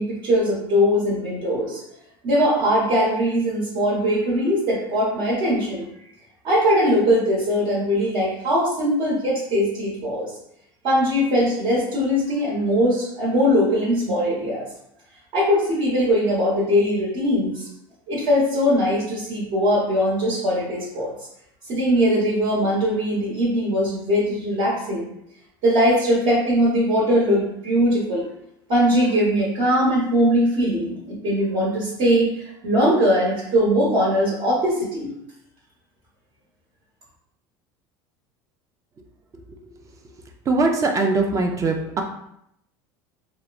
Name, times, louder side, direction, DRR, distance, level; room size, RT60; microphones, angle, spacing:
voice 1, 0.0-1.8 2.2-5.9 6.4-10.3 10.8-14.7 15.3-17.7 18.1-21.1 21.7-25.1 25.6-28.2 28.7-32.3 32.6-35.1, equal, 60° right, -6 dB, 1.1 m, -20 dB
voice 2, 40.5-42.0, right 3 dB, 30° right, 3 dB, 0.4 m, -21 dB
3.0 x 2.1 x 2.4 m, 0.76 s
supercardioid pair, 105°, 11 cm